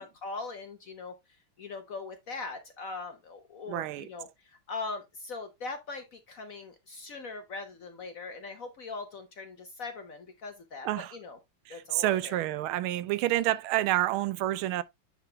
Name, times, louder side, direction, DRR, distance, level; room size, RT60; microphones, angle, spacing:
voice 1, 0.0-11.4 11.7-12.4, left 3 dB, 60° left, 0.9 m, -41 dB
voice 2, 3.7-4.1 10.8-11.2 11.7-14.8, right 15 dB, 85° right, 1.4 m, -28 dB
9.6 x 3.7 x 3.3 m
omnidirectional pair, 2.3 m